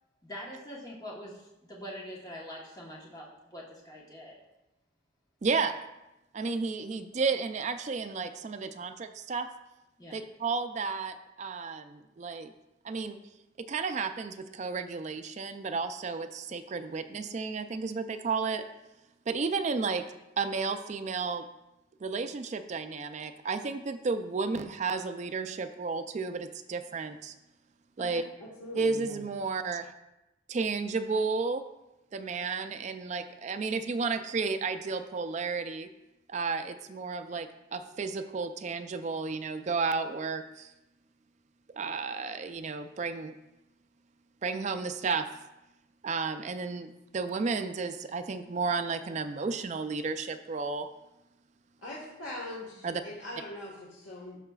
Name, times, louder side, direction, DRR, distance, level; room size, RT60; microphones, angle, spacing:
voice 1, 0.2-4.4 10.0-10.2 28.1-28.2, equal, 20° left, -4 dB, 1.1 m, -44 dB
voice 2, 5.4-5.8 6.3-9.5 10.1-12.5 12.8-13.2 13.6-18.6 19.3-20.0 20.4-21.4 22.0-27.3 28.0-28.2 28.7-29.9 30.5-31.6 32.1-35.9 36.3-40.7 41.8-43.3 44.4-45.3 46.0-50.9 52.8-53.0, right 4 dB, 35° right, 8 dB, 0.4 m, -32 dB
voice 3, 28.4-29.2 51.8-54.4, left 1 dB, 85° left, -4 dB, 1.5 m, -41 dB
13.0 x 4.8 x 2.3 m, 0.94 s
head